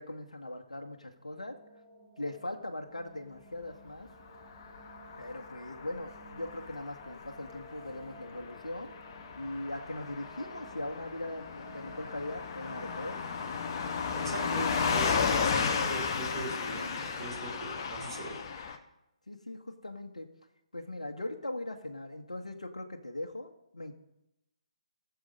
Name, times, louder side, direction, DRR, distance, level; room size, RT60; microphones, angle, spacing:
voice 1, 0.0-1.6 2.2-4.1 5.2-8.9 9.3-13.2 19.3-20.3 20.7-23.9, left 1 dB, 70° left, 3 dB, 1.4 m, -40 dB
sound 1, 1.1-15.9, right 2 dB, 10° right, 1.6 m, -54 dB
Car passing by / Truck, 4.4-18.8, left 5 dB, 35° left, 1.0 m, -34 dB
voice 2, 14.1-14.7 14.9-18.4, right 3 dB, 40° right, -2 dB, 3.9 m, -40 dB
16.5 x 7.0 x 5.4 m, 0.87 s
figure-of-eight pair, 140°, 4 cm